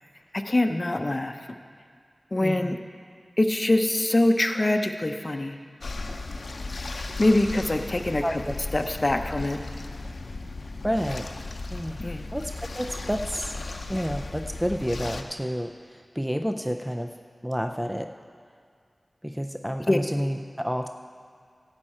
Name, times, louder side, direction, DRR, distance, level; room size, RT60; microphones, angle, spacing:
voice 1, 0.3-1.4 2.3-2.8 3.4-5.6 7.2-8.4 8.7-9.6 12.0-12.3 19.9-20.0, left 1 dB, 35° left, 6 dB, 0.7 m, -24 dB
voice 2, 2.4-2.7 8.2-8.5 10.8-11.3 11.7-12.0 12.3-13.5 13.9-17.1 17.4-18.1 19.2-20.9, equal, 5° right, 5 dB, 0.4 m, -30 dB
sound 1, 5.8-15.2, left 2 dB, 85° left, 0.6 m, -36 dB
15.5 x 8.9 x 4.3 m, 2.2 s
wide cardioid pair, 80°, 0 cm